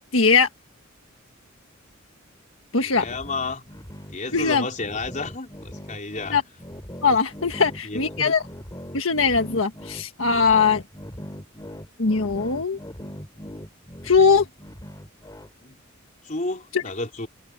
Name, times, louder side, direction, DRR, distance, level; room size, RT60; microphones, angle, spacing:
voice 1, 0.1-0.5 2.7-3.0 4.3-4.6 6.3-6.4 7.0-8.4 8.9-10.8 12.0-12.8 14.0-14.4 16.7-16.8, left 5 dB, 80° left, 1.5 m, -20 dB
voice 2, 2.8-3.7 4.1-6.4 7.6-8.3 15.6-15.8 16.2-17.3, left 3 dB, 40° left, 4.5 m, -32 dB
sound 1, 2.9-15.5, equal, 20° left, 3.5 m, -40 dB
head